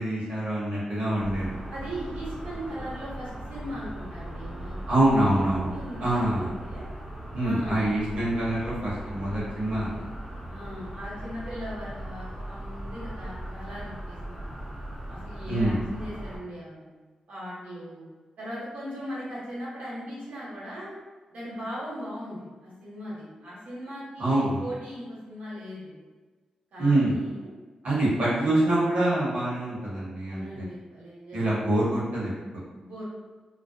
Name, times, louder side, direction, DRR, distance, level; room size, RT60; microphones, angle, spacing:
voice 1, 0.0-1.6 4.9-5.7 6.0-6.5 7.3-9.9 15.5-15.8 24.2-24.6 26.8-27.2 27.8-30.6 31.3-32.3, right 1 dB, 60° right, -7 dB, 1.0 m, -25 dB
sound 1, 1.2-16.4, right 1 dB, 5° right, 0.8 m, -39 dB
voice 2, 1.7-5.0 5.7-6.8 7.4-7.9 10.5-14.6 15.1-16.9 17.3-18.0 18.4-20.9 21.3-26.0 26.7-27.5 27.9-28.3 30.2-31.6 32.8-33.1, equal, 85° right, -8 dB, 1.1 m, -39 dB
2.3 x 2.0 x 2.6 m, 1.3 s
wide cardioid pair, 105°, 2 cm